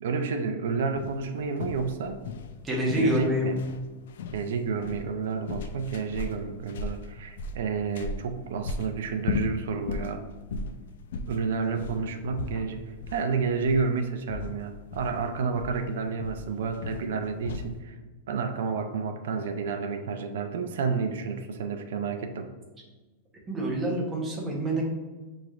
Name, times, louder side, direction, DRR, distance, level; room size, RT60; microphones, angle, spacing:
voice 1, 0.0-2.2 3.0-3.6 4.3-10.2 11.3-18.0 18.3-22.5, right 5 dB, 75° right, 6 dB, 0.4 m, -30 dB
sound 1, 1.0-17.8, left 4 dB, 75° left, 0.3 m, -37 dB
voice 2, 2.6-3.6 23.5-24.8, equal, 15° right, -2 dB, 0.8 m, -27 dB
6.8 x 3.1 x 2.4 m, 1.3 s
supercardioid pair, 170°, 0 cm